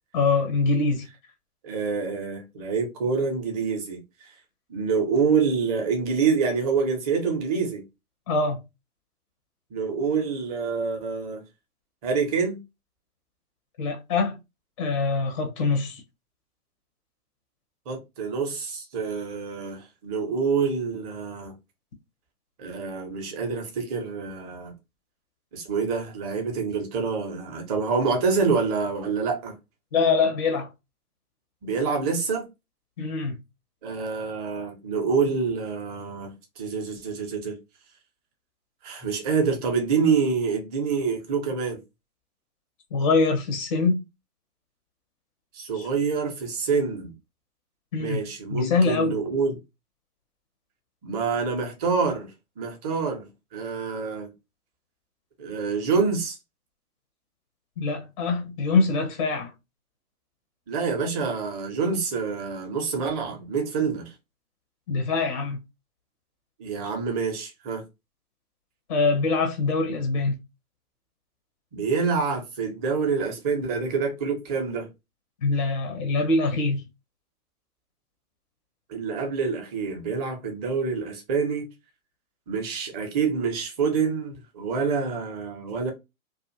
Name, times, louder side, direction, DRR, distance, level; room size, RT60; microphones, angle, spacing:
voice 1, 0.1-1.1 8.3-8.6 13.8-14.4 14.8-16.0 29.9-30.7 33.0-33.4 42.9-44.0 47.9-48.2 48.5-49.2 57.8-59.5 64.9-65.6 68.9-70.4 75.4-76.8, left 4 dB, 25° left, 0.4 m, -24 dB
voice 2, 1.6-4.0 4.7-7.8 9.7-11.4 12.0-12.6 17.9-21.5 22.6-24.7 25.5-29.5 31.6-32.5 33.8-37.6 38.8-41.8 45.5-47.1 48.0-49.6 51.0-54.3 55.4-56.4 60.7-64.1 66.6-67.8 71.7-74.9 78.9-81.7 82.5-85.9, right 5 dB, 25° right, 0.8 m, -27 dB
2.5 x 2.4 x 2.6 m
figure-of-eight pair, 125°, 44 cm